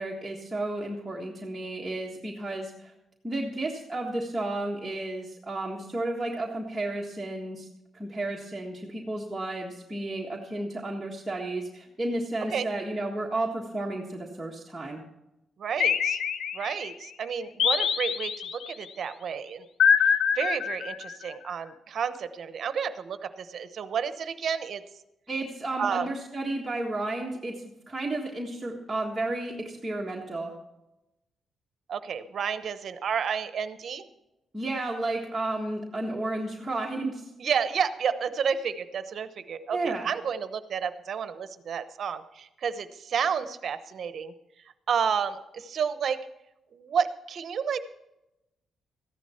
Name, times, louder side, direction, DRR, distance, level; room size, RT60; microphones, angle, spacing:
voice 1, 0.0-2.9 3.2-7.7 7.9-15.0 25.3-30.5 34.5-37.3 39.7-40.1, right 2 dB, 10° right, -3 dB, 1.6 m, -32 dB
voice 2, 15.6-16.2 16.5-19.7 20.0-24.8 25.8-26.1 31.9-34.0 37.4-44.3 44.9-46.2 46.7-47.8, right 7 dB, 60° right, 12 dB, 0.9 m, -31 dB
sound 1, 15.8-16.9 17.6-18.7 19.8-21.3, left 7 dB, 70° left, 0.8 m, -25 dB
14.5 x 11.0 x 4.4 m, 0.93 s
cardioid pair, 110°, 0 cm